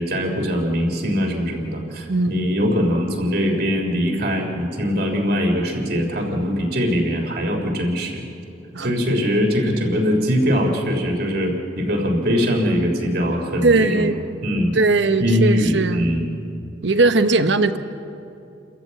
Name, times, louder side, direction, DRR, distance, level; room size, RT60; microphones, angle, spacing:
voice 1, 0.0-8.3 8.8-14.1 14.4-14.8 15.2-16.3, equal, 55° right, 2 dB, 3.4 m, -22 dB
voice 2, 2.1-2.4 8.7-8.9 13.6-14.2 14.7-16.0 16.8-17.8, right 3 dB, 80° right, 10 dB, 1.0 m, -18 dB
29.0 x 14.0 x 8.4 m, 2.7 s
head